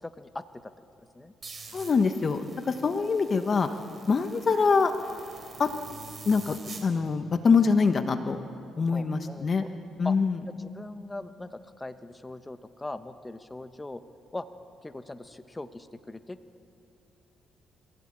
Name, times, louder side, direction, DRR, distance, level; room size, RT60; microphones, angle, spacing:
voice 1, 0.0-0.7 1.1-1.3 8.9-9.7 10.0-10.1 10.5-14.0 14.3-14.5 14.8-16.4, left 2 dB, 15° left, 10 dB, 1.0 m, -40 dB
sound 1, 1.4-6.9, right 4 dB, 40° right, 3.5 m, -46 dB
voice 2, 1.7-3.7 4.1-4.9 5.6-5.7 6.2-6.6 6.8-8.4 8.8-9.6 10.0-10.4, left 5 dB, 40° left, 8 dB, 1.2 m, -24 dB
25.0 x 16.5 x 8.9 m, 2.6 s
cardioid pair, 90°, 0 cm